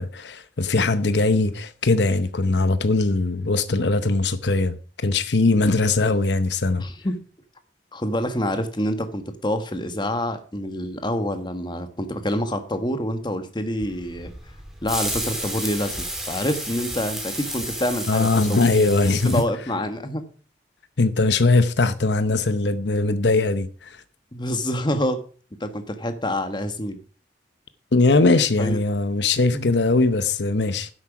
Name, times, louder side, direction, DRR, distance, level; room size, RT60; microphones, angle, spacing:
voice 1, 0.0-6.9 18.1-19.4 21.0-24.0 27.9-30.9, left 3 dB, 75° left, 0.8 m, -20 dB
voice 2, 6.8-7.2 7.9-14.3 14.8-18.6 19.2-20.2 24.3-25.2 25.6-27.0 28.6-28.8 29.5-29.7, left 1 dB, 25° left, 1.4 m, -27 dB
sound 1, 13.8-19.4, right 1 dB, 5° right, 2.5 m, -32 dB
10.5 x 8.0 x 5.9 m
head